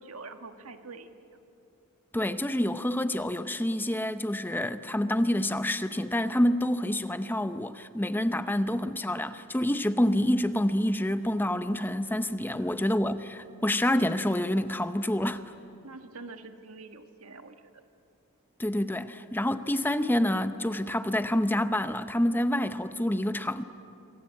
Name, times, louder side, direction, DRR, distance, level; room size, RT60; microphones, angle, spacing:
voice 1, 0.0-1.4 8.6-8.8 12.5-12.7 15.8-17.8, right 3 dB, 85° right, 1.7 m, -46 dB
voice 2, 2.1-15.4 18.6-23.6, left 1 dB, 10° left, 0.7 m, -27 dB
27.5 x 24.0 x 8.6 m
head